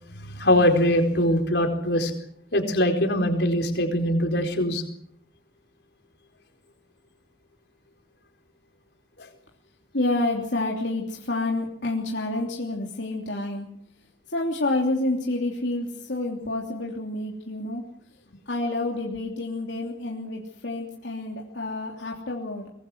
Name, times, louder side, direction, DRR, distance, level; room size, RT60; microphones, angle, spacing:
voice 1, 0.1-2.1 2.5-4.8, left 1 dB, 70° left, 4 dB, 4.5 m, -22 dB
voice 2, 9.9-13.7 14.3-17.8 18.4-22.7, left 2 dB, 90° left, -1 dB, 3.2 m, -28 dB
24.0 x 22.0 x 6.3 m, 0.65 s
head